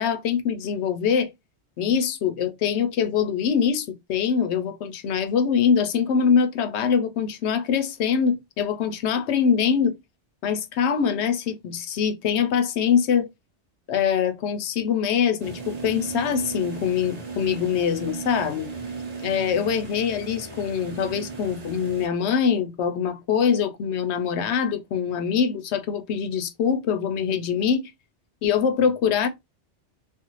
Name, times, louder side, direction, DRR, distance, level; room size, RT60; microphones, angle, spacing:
voice 1, 0.0-1.3 1.8-10.0 10.4-13.3 13.9-18.7 19.2-27.9 28.4-29.3, left 7 dB, 75° left, 0.8 m, -23 dB
sound 1, 15.4-22.1, right 4 dB, 40° right, 0.8 m, -36 dB
2.5 x 2.4 x 3.0 m
omnidirectional pair, 1.2 m